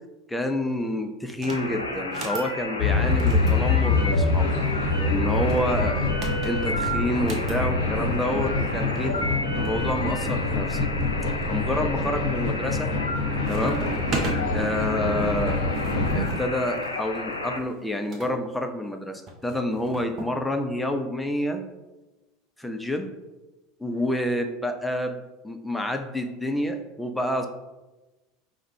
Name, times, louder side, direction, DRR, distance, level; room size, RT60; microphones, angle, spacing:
voice 1, 0.3-4.5 5.1-6.1 6.4-9.2 9.6-10.9 11.5-12.9 13.5-13.8 14.5-15.7 16.1-21.7 22.6-23.1 23.8-27.5, left 1 dB, 5° left, 5 dB, 0.4 m, -28 dB
sound 1, 1.3-1.7 2.0-2.5 3.1-4.5 5.3-7.6 8.7-8.8 8.9-9.1 9.6-10.4 11.0-11.5 12.0-12.4 12.7-13.2 13.4-14.4 15.4-18.3 19.3-20.3, right 3 dB, 40° right, 0.7 m, -37 dB
sound 2, 1.5-17.6, left 2 dB, 85° left, 0.3 m, -32 dB
sound 3, 2.8-16.3, left 3 dB, 55° left, 0.7 m, -26 dB
4.8 x 2.1 x 3.2 m, 1.1 s
figure-of-eight pair, 75°, 0 cm